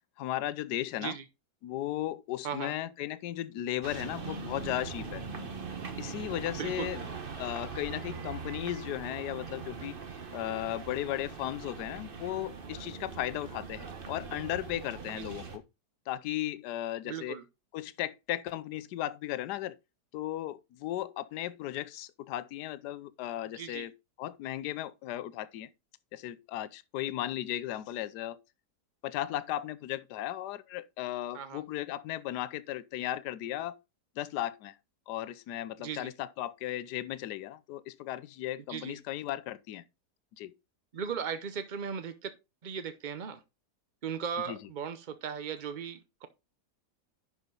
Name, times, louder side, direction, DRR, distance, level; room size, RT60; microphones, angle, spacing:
voice 1, 0.2-1.1 1.6-5.2 6.0-7.0 7.4-9.9 10.3-15.6 16.1-17.4 17.7-19.7 20.1-23.9 24.2-25.7 26.1-28.4 29.0-33.8 34.2-34.7 35.1-39.8 40.4-40.5 44.5-44.6, left 13 dB, 75° left, 1.2 m, -36 dB
sound 1, 3.8-15.6, right 5 dB, 35° right, 1.2 m, -41 dB
voice 2, 6.5-6.9 15.2-15.4 17.0-17.4 23.5-23.9 31.3-31.6 35.8-36.1 38.7-39.0 40.9-42.3 42.6-43.4 44.0-46.3, right 7 dB, 65° right, 0.4 m, -37 dB
10.5 x 5.0 x 3.8 m
omnidirectional pair, 1.8 m